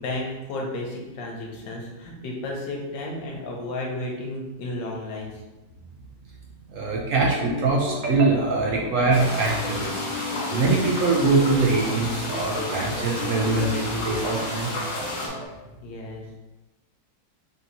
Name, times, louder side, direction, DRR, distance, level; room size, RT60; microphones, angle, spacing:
voice 1, 0.0-5.3 15.8-16.4, left 1 dB, 70° left, -1 dB, 1.4 m, -33 dB
voice 2, 6.7-10.1 10.5-14.7, right 3 dB, 75° right, -1 dB, 0.7 m, -23 dB
sound 1, 7.2-15.5, left 2 dB, 35° left, 0.9 m, -35 dB
sound 2, 9.1-15.3, left 1 dB, 55° left, 1.3 m, -32 dB
3.7 x 2.8 x 3.9 m, 1.1 s
omnidirectional pair, 2.0 m